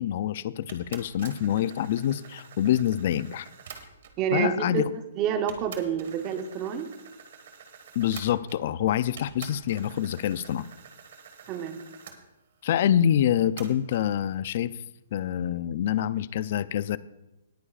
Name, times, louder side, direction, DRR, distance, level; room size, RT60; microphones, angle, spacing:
voice 1, 0.0-3.5 4.3-4.9 8.0-10.7 12.6-14.8 15.1-17.0, left 10 dB, 45° left, 17 dB, 0.4 m, -26 dB
sound 1, 0.7-4.3 5.0-5.1 5.5-8.8 9.2-12.2 13.6-14.1, right 7 dB, 55° right, 1.5 m, -47 dB
voice 2, 4.2-4.8 5.2-6.9 11.5-11.8, right 8 dB, 25° right, 8 dB, 0.8 m, -28 dB
18.0 x 9.9 x 2.4 m, 0.95 s
hypercardioid pair, 160°, 0 cm